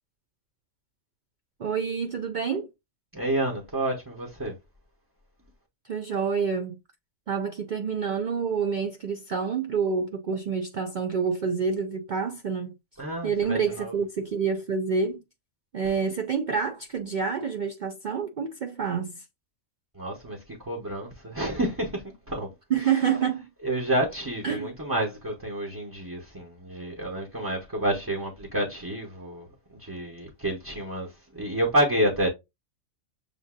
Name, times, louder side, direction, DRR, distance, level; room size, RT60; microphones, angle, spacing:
voice 1, 1.6-2.7 5.8-6.8 7.3-12.7 13.2-15.2 15.7-19.2 22.7-23.5 24.4-24.7, right 6 dB, 80° right, 0.4 m, -28 dB
voice 2, 3.1-4.5 13.0-13.9 19.9-22.5 23.6-32.3, right 1 dB, 20° right, 0.9 m, -29 dB
6.8 x 2.6 x 2.4 m
omnidirectional pair, 1.4 m